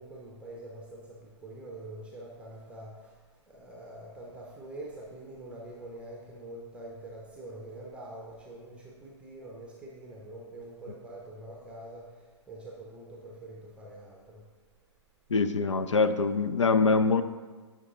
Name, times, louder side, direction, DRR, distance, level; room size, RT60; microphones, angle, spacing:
voice 1, 0.0-14.4, right 1 dB, 5° right, -2 dB, 0.8 m, -45 dB
voice 2, 15.3-17.2, left 4 dB, 75° left, 11 dB, 0.5 m, -24 dB
9.4 x 5.8 x 2.6 m, 1.4 s
figure-of-eight pair, 110°, 16 cm